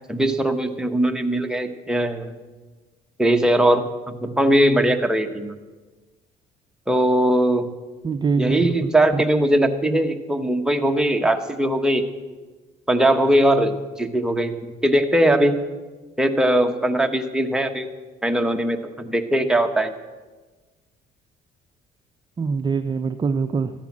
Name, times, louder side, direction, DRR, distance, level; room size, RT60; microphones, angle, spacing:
voice 1, 0.1-2.3 3.2-5.5 6.9-7.7 8.4-12.0 12.9-14.5 14.8-15.6 16.2-17.9 18.2-19.9, right 1 dB, 5° right, 5 dB, 1.1 m, -20 dB
voice 2, 8.0-9.2 22.4-23.7, right 5 dB, 25° right, 8 dB, 0.5 m, -24 dB
14.0 x 10.5 x 7.3 m, 1.3 s
cardioid pair, 110°, 17 cm